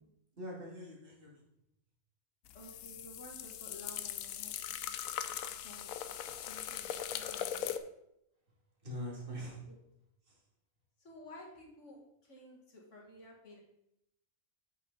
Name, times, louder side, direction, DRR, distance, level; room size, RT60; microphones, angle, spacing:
voice 1, 0.4-1.5 6.3-6.4 8.8-9.7 10.2-10.4, equal, 40° right, -3 dB, 2.4 m, -44 dB
sound 1, 2.5-7.8, left 10 dB, 85° left, 1.0 m, -40 dB
voice 2, 2.5-4.6 5.6-6.1 6.5-7.8 9.7-9.8 11.0-13.6, left 1 dB, 60° left, -1 dB, 2.2 m, -53 dB
8.3 x 6.6 x 4.0 m, 0.80 s
omnidirectional pair, 1.4 m